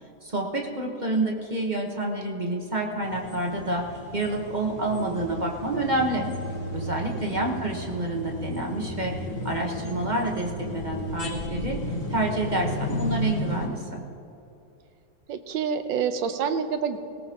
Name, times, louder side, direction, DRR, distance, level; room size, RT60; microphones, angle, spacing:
voice 1, 0.2-6.3 6.7-11.8 12.1-14.0, right 2 dB, 30° right, 1 dB, 1.1 m, -28 dB
sound 1, 3.0-13.7, left 1 dB, 55° left, 3.2 m, -33 dB
voice 2, 15.3-17.0, right 7 dB, 90° right, 9 dB, 1.6 m, -27 dB
19.5 x 18.0 x 2.9 m, 2.7 s
omnidirectional pair, 2.0 m